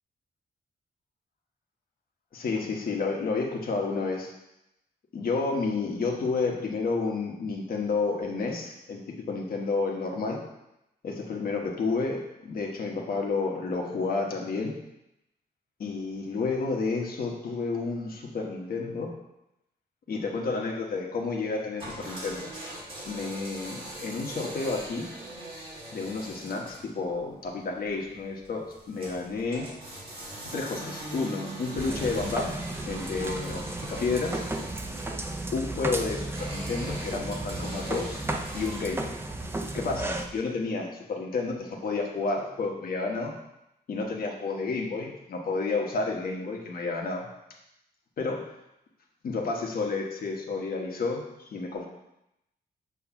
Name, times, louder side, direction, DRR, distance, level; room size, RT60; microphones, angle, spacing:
voice 1, 2.3-4.3 5.1-10.4 11.0-14.7 15.8-19.1 20.1-22.5 23.1-25.1 25.9-29.7 30.5-32.6 32.9-34.4 35.5-38.2 38.5-39.2 39.7-43.3 43.9-47.3 48.2-48.4 49.2-51.9, left 4 dB, 55° left, 0 dB, 1.2 m, -30 dB
sound 1, 21.8-39.0, right 1 dB, 30° right, 1.8 m, -42 dB
sound 2, 31.8-40.3, right 2 dB, 15° right, 0.5 m, -34 dB
7.2 x 3.1 x 5.9 m, 0.87 s
wide cardioid pair, 170°, 18 cm